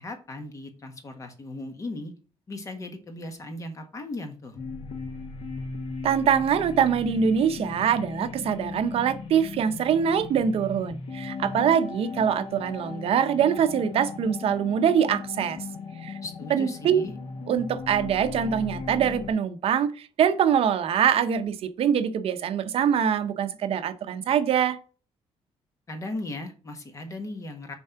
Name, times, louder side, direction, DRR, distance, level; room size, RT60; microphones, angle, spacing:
voice 1, 0.0-2.1 2.5-4.6 16.2-17.1 25.9-27.7, left 2 dB, 30° left, 1.5 m, -37 dB
sound 1, 4.6-19.3, left 4 dB, 60° left, 1.4 m, -37 dB
voice 2, 6.0-15.6 16.0-16.2 16.5-17.0 17.5-24.8, right 8 dB, 60° right, 0.7 m, -24 dB
7.0 x 4.5 x 5.7 m
cardioid pair, 160°, 11 cm